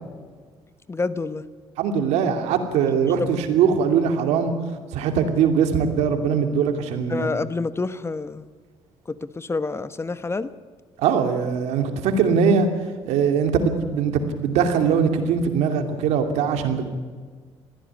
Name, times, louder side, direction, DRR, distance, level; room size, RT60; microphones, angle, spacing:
voice 1, 0.9-1.5 3.2-3.3 7.1-8.5 9.1-10.5, left 3 dB, 25° left, 14 dB, 1.0 m, -28 dB
voice 2, 1.8-4.5 4.9-7.3 11.0-12.7 13.0-16.9, right 6 dB, 90° right, 6 dB, 2.7 m, -21 dB
21.0 x 16.0 x 9.7 m, 1.5 s
cardioid pair, 90°, 11 cm